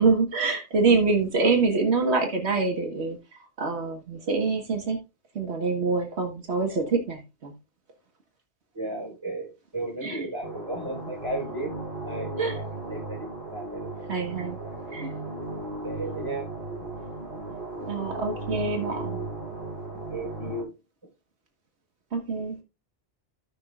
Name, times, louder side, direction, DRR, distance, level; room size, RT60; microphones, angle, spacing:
voice 1, 0.0-3.2 3.6-5.0 5.4-7.5 10.0-10.3 12.4-12.6 14.1-14.6 14.9-15.1 17.9-19.2 22.1-22.6, right 4 dB, 85° right, 3 dB, 1.7 m, -25 dB
voice 2, 8.7-11.7 12.0-13.9 14.8-14.9 15.8-16.5 20.1-20.7, right 2 dB, 25° right, -2 dB, 5.1 m, -34 dB
sound 1, 10.4-20.6, right 2 dB, 50° right, 5.7 m, -36 dB
16.0 x 5.8 x 2.4 m, 0.28 s
omnidirectional pair, 1.1 m